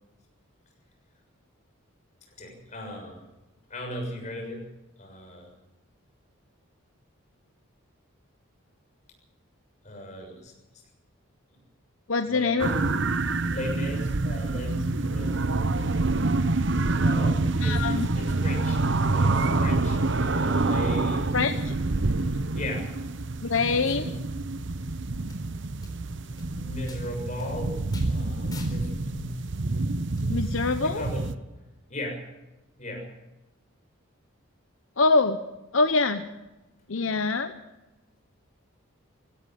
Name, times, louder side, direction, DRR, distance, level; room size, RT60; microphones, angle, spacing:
voice 1, 2.4-3.2 3.7-4.6 5.0-5.5 9.8-10.8 12.3-12.9 13.5-16.0 17.0-18.8 19.1-21.5 22.5-22.9 23.7-24.1 26.5-27.8 28.1-29.4 30.8-31.2 31.9-32.2 32.8-33.1, left 1 dB, 35° left, 1 dB, 6.8 m, -37 dB
voice 2, 12.1-12.7 17.6-18.1 21.3-21.7 23.4-24.1 30.3-31.0 35.0-35.4 35.7-36.2 36.9-37.5, left 3 dB, 70° left, 8 dB, 0.9 m, -24 dB
sound 1, 12.6-31.3, right 2 dB, 55° right, 0.9 m, -27 dB
sound 2, 25.3-25.4 25.8-25.9 26.4-26.5 26.9-27.0 27.4-27.5 27.9-28.1 28.5-28.8 30.2-30.3, left 4 dB, 20° left, 4.2 m, -45 dB
18.0 x 16.5 x 9.2 m, 1.0 s
head